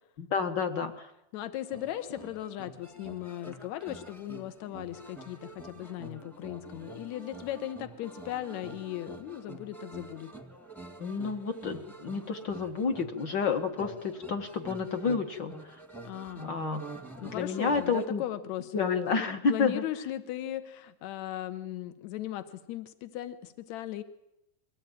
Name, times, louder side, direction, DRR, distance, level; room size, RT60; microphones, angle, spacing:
voice 1, 0.2-1.1 11.0-15.6 16.4-16.8 17.2-18.2 18.7-19.8, left 5 dB, 50° left, 6 dB, 1.5 m, -30 dB
voice 2, 1.3-10.3 16.1-16.5 17.2-24.0, left 13 dB, 75° left, 10 dB, 2.4 m, -37 dB
sound 1, 1.7-18.1, right 3 dB, ahead, 1.0 m, -47 dB
22.5 x 15.5 x 9.0 m, 0.86 s
omnidirectional pair, 3.4 m